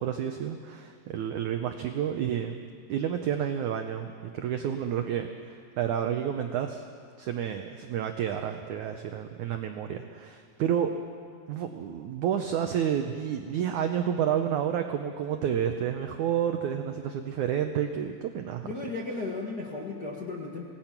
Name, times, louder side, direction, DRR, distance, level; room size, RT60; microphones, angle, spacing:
voice 1, 0.0-2.6 2.9-6.8 7.2-10.9 11.5-18.7, right 9 dB, 85° right, 6 dB, 1.7 m, -30 dB
voice 2, 18.6-20.6, left 3 dB, 65° left, -3 dB, 0.9 m, -35 dB
26.0 x 18.5 x 6.0 m, 2.3 s
omnidirectional pair, 4.7 m